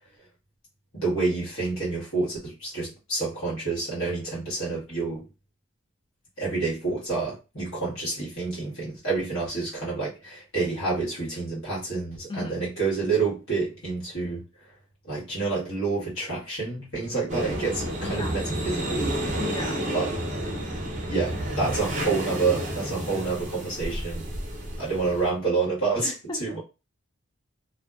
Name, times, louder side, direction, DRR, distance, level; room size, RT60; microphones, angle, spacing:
voice 1, 0.9-5.3 6.4-14.4 15.1-19.1 19.9-20.1 21.1-24.3 24.8-26.1 26.4-26.6, right 4 dB, 90° left, 1.3 m, -28 dB
voice 2, 12.3-12.7 18.0-18.4 19.4-19.9 26.0-26.6, left 2 dB, 20° left, 0.3 m, -36 dB
sound 1, 17.3-25.3, right 1 dB, 35° right, 0.5 m, -30 dB
2.6 x 2.2 x 2.3 m
head